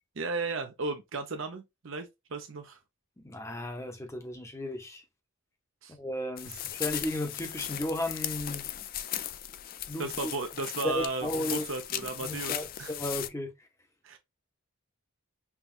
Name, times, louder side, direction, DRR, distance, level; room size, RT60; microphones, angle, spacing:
voice 1, 0.2-2.8 5.8-5.9 10.0-12.9 14.0-14.2, right 3 dB, 65° right, 0.7 m, -35 dB
voice 2, 3.2-5.0 5.9-8.7 9.9-10.3 10.8-11.6 12.2-13.5, left 1 dB, 15° left, 0.7 m, -34 dB
sound 1, 6.4-13.3, left 11 dB, 45° left, 0.3 m, -37 dB
5.7 x 2.3 x 2.4 m
head